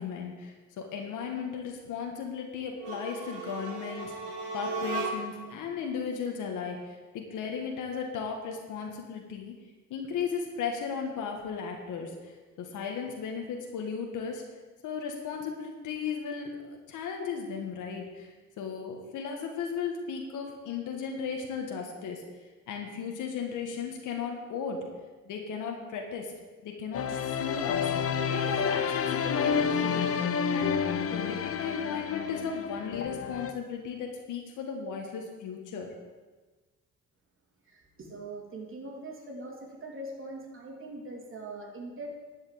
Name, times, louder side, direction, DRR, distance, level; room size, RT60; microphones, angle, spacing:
voice 1, 0.0-9.5 9.9-14.4 14.8-22.2 22.7-24.9 25.3-26.3 26.6-27.9 28.3-30.1 30.5-35.9, left 6 dB, 85° left, 2 dB, 1.7 m, -36 dB
sound 1, 2.7-5.5, right 2 dB, 90° right, 1.8 m, -36 dB
sound 2, 26.9-33.5, left 6 dB, 50° left, 0.9 m, -29 dB
voice 2, 37.6-42.1, right 2 dB, 45° right, -1 dB, 3.5 m, -42 dB
11.5 x 5.6 x 8.6 m, 1.3 s
cardioid pair, 90°, 30 cm